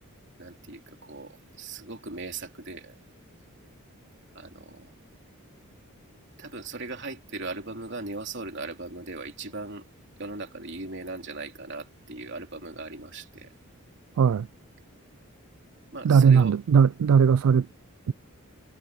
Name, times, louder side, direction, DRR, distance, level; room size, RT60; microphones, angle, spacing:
voice 1, 0.4-3.0 4.4-4.9 6.4-9.9 10.2-13.5 15.9-16.6, right 3 dB, 50° right, 3.4 m, -38 dB
voice 2, 16.0-17.7 18.1-18.2, right 6 dB, 75° right, 0.3 m, -19 dB
head